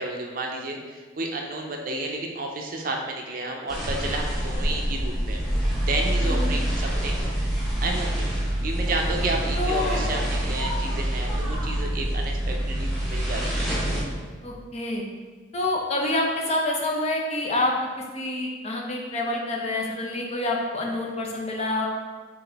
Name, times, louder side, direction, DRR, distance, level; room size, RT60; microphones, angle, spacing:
voice 1, 0.0-5.4 5.8-7.2 7.8-8.3 8.6-13.7, right 2 dB, 45° right, 2 dB, 0.5 m, -31 dB
sound 1, 3.7-14.0, right 1 dB, ahead, 0.8 m, -26 dB
voice 2, 6.2-6.5 9.6-10.0 14.4-15.1 15.5-17.7 18.1-21.9, left 2 dB, 35° left, 0 dB, 0.5 m, -27 dB
3.9 x 3.6 x 3.4 m, 1.4 s
head